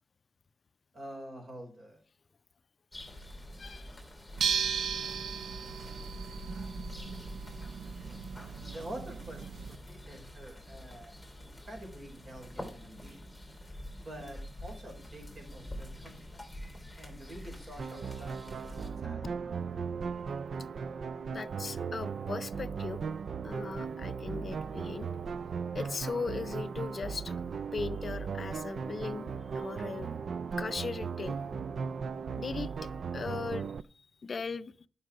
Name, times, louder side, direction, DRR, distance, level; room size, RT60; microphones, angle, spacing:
voice 1, 0.9-2.0 8.7-13.2 14.0-16.5 16.9-19.3, right 1 dB, 40° right, 4.2 m, -47 dB
sound 1, 2.9-18.9, left 1 dB, ahead, 3.0 m, -46 dB
voice 2, 3.6-4.0 7.1-7.3 21.3-23.0 23.4-25.1 25.7-27.4 27.7-30.1 30.6-31.4 32.4-34.9, left 4 dB, 40° left, 0.5 m, -38 dB
sound 2, 4.4-9.8, right 7 dB, 90° right, 0.7 m, -36 dB
sound 3, 17.8-33.8, right 6 dB, 55° right, 0.4 m, -37 dB
11.5 x 5.7 x 4.7 m
wide cardioid pair, 160°, 0 cm